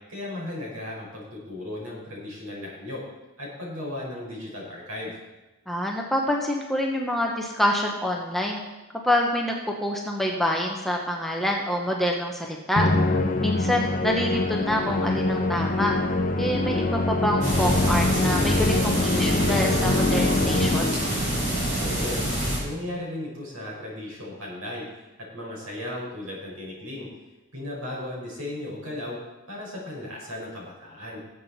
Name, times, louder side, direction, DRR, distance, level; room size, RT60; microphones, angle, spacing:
voice 1, 0.1-3.0 3.4-5.2 21.8-22.2 22.6-27.1 27.5-29.2 29.5-31.2, left 1 dB, 75° right, -3 dB, 5.2 m, -36 dB
voice 2, 5.7-8.6 9.0-15.9 16.4-20.9, left 1 dB, ahead, 0 dB, 1.0 m, -26 dB
Musical instrument, 12.8-21.3, left 2 dB, 35° left, 0.8 m, -24 dB
sound 1, 17.4-22.6, right 1 dB, 35° right, 3.9 m, -26 dB
18.5 x 7.8 x 4.3 m, 1.1 s
head